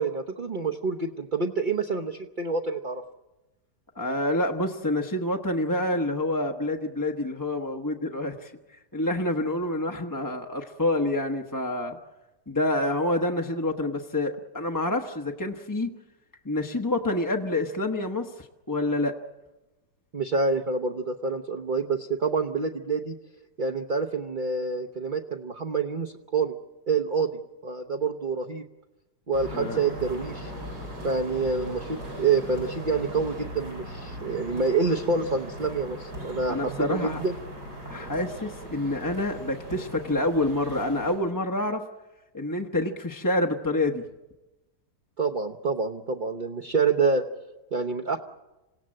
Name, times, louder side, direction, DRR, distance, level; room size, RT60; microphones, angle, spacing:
voice 1, 0.0-3.0 20.1-23.1 23.6-26.6 26.9-27.3 27.6-28.6 29.3-30.5 31.0-37.4 45.2-47.2 47.7-48.2, right 4 dB, 35° right, 4 dB, 0.9 m, -27 dB
voice 2, 4.0-8.5 8.9-12.0 12.5-15.9 16.4-19.2 29.5-29.8 36.5-37.2 37.8-41.8 42.3-44.0, left 1 dB, 15° left, 2 dB, 0.8 m, -27 dB
sound 1, 29.3-41.2, equal, 85° right, 8.7 m, -39 dB
27.0 x 17.0 x 7.7 m, 1.1 s
omnidirectional pair, 1.7 m